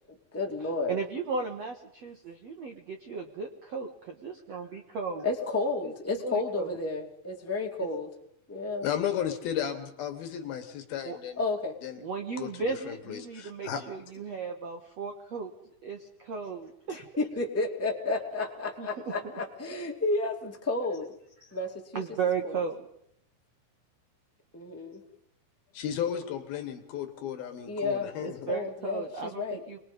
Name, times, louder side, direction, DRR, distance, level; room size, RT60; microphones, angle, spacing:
voice 1, 0.3-1.0 5.2-8.1 8.5-8.9 11.4-11.7 17.2-21.1 21.5-22.0 22.4-22.5 24.5-25.0 27.6-29.6, left 3 dB, 5° left, 1 dB, 1.3 m, -31 dB
voice 2, 0.9-5.3 5.8-5.9 6.2-6.8 11.0-11.2 12.0-15.5 15.8-17.1 18.8-19.1 21.4-21.6 21.9-22.9 28.2-29.8, right 5 dB, 60° right, 4 dB, 1.7 m, -35 dB
voice 3, 8.8-11.4 11.8-12.0 12.4-12.5 12.9-13.9 25.7-28.5, left 9 dB, 65° left, 7 dB, 2.8 m, -34 dB
26.5 x 21.0 x 5.4 m, 0.72 s
omnidirectional pair, 5.2 m